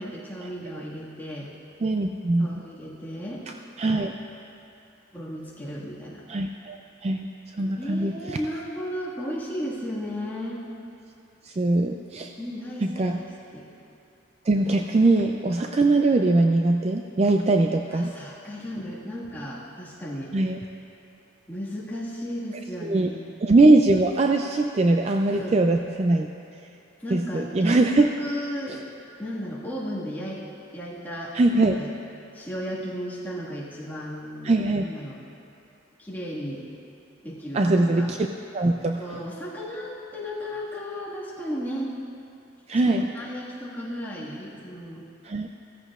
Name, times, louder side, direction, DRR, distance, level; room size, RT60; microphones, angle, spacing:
voice 1, 0.0-1.5 2.4-3.5 3.9-4.0 5.1-6.2 7.8-10.6 12.4-13.3 13.5-13.7 17.9-20.3 21.5-23.3 25.3-25.6 27.0-28.8 29.2-30.4 30.7-31.9 32.3-34.5 34.8-35.2 36.0-36.6 37.2-38.1 39.0-41.9 43.1-45.0, equal, 10° left, -8 dB, 1.8 m, -34 dB
voice 2, 1.8-2.6 3.8-4.1 6.3-8.4 11.4-12.3 12.8-13.2 14.4-18.1 20.3-20.6 22.8-23.1 23.4-26.3 27.1-28.1 28.7-28.8 31.3-31.8 34.4-34.9 37.5-38.2 38.5-39.2 42.7-43.1 45.2-45.5, right 2 dB, 30° right, 3 dB, 0.3 m, -22 dB
16.0 x 14.5 x 2.4 m, 2.6 s
head